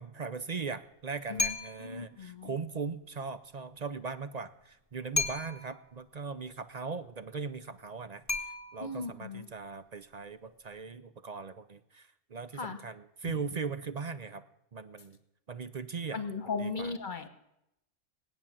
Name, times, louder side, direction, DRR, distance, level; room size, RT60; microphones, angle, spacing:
voice 1, 0.0-8.2 8.7-14.4 14.7-15.2 15.5-16.2 16.6-16.9, right 5 dB, 45° right, 12 dB, 0.6 m, -39 dB
voice 2, 1.3-2.5 8.8-9.5 12.5-12.8 16.1-17.3, left 4 dB, 40° left, 9 dB, 1.4 m, -37 dB
sound 1, 1.4-2.0 5.1-5.8 8.3-9.1, left 3 dB, 15° left, 1.3 m, -34 dB
19.5 x 9.0 x 7.4 m, 0.84 s
omnidirectional pair, 1.3 m